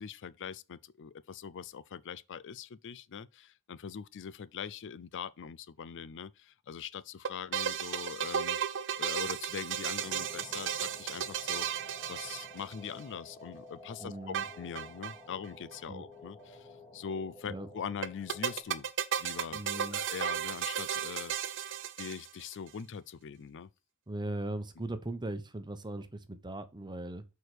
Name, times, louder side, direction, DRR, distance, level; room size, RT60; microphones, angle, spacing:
voice 1, 0.0-8.6 9.0-18.9 19.2-23.7, left 7 dB, 55° left, 0.4 m, -42 dB
sound 1, 7.2-13.0 14.3-15.2 15.4-15.5 15.7-15.8 18.0-22.5, right 8 dB, 55° right, 0.6 m, -34 dB
sound 2, 10.0-18.6, left 3 dB, 25° left, 2.3 m, -52 dB
voice 2, 14.0-14.4 15.9-16.0 17.5-17.7 19.5-20.0 24.1-27.2, right 1 dB, 20° right, 0.9 m, -39 dB
6.4 x 4.6 x 4.8 m
head